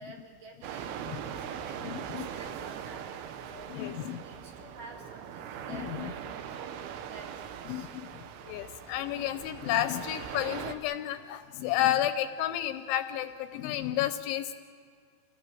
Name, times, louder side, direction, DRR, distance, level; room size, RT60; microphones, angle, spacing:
voice 1, 0.0-1.0 1.3-1.9 2.2-7.9, right 2 dB, 55° right, 0 dB, 2.8 m, -50 dB
sound 1, 0.6-10.8, right 9 dB, 80° right, 3.4 m, -41 dB
voice 2, 1.8-2.3 3.7-4.2 5.7-6.1 7.7-14.5, left 12 dB, 80° left, 9 dB, 2.9 m, -31 dB
28.0 x 18.0 x 7.8 m, 2.2 s
omnidirectional pair, 5.8 m